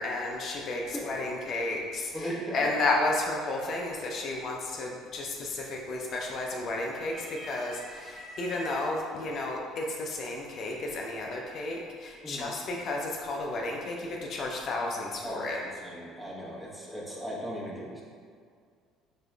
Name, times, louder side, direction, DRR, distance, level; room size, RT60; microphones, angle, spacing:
voice 1, 0.0-15.6, left 2 dB, 50° left, -1 dB, 0.4 m, -32 dB
voice 2, 2.1-2.7 12.2-12.5 15.2-18.0, equal, 10° right, -5 dB, 1.0 m, -37 dB
sound 1, 5.1-5.5 5.9-6.6 7.0-8.9 9.8-9.9 11.1-11.6, equal, 15° left, 1.4 m, -46 dB
4.0 x 3.5 x 2.2 m, 2.2 s
hypercardioid pair, 65°, 0 cm